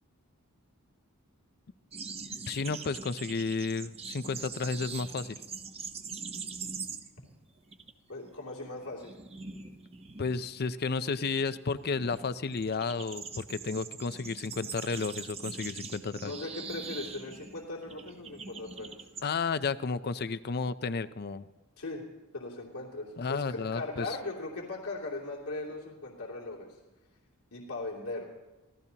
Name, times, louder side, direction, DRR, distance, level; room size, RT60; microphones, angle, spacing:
sound 1, 1.9-7.3 7.6-7.9 8.2-19.3, right 5 dB, 30° right, 0.9 m, -43 dB
voice 1, 2.5-5.4 10.2-16.3 19.2-21.5 23.2-24.1, left 4 dB, 45° left, 14 dB, 0.6 m, -32 dB
voice 2, 8.1-9.1 16.2-19.1 21.8-22.0 22.3-26.7 27.5-28.3, left 2 dB, 80° left, -3 dB, 2.8 m, -39 dB
24.5 x 16.5 x 2.9 m, 1.1 s
head